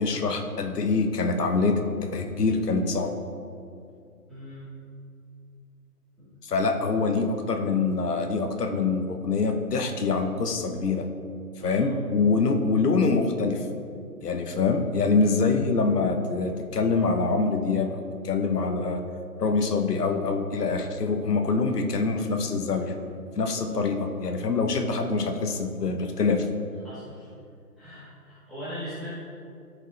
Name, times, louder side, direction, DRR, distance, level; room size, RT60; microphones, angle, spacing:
voice 1, 0.0-1.8 2.1-3.2 6.4-11.1 11.6-13.7 14.2-19.0 19.4-23.0 23.3-26.5, left 4 dB, 75° left, 5 dB, 1.0 m, -25 dB
voice 2, 4.3-4.6 6.2-6.3 11.6-11.9 26.8-27.3 27.8-29.1, equal, ahead, -16 dB, 1.1 m, -40 dB
13.5 x 5.0 x 3.3 m, 2.4 s
hypercardioid pair, 160°, 48 cm